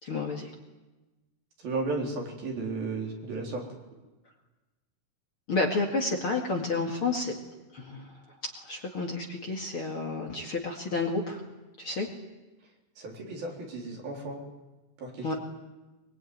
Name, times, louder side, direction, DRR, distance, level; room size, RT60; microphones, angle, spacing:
voice 1, 0.0-0.5 5.5-7.4 7.7-8.1 8.4-11.4 11.8-12.1 15.2-15.3, left 3 dB, 40° left, 1 dB, 2.4 m, -30 dB
voice 2, 1.6-3.6 13.0-14.4 15.0-15.4, right 3 dB, 65° right, 1 dB, 5.7 m, -34 dB
23.0 x 22.5 x 9.5 m, 1.1 s
omnidirectional pair, 4.5 m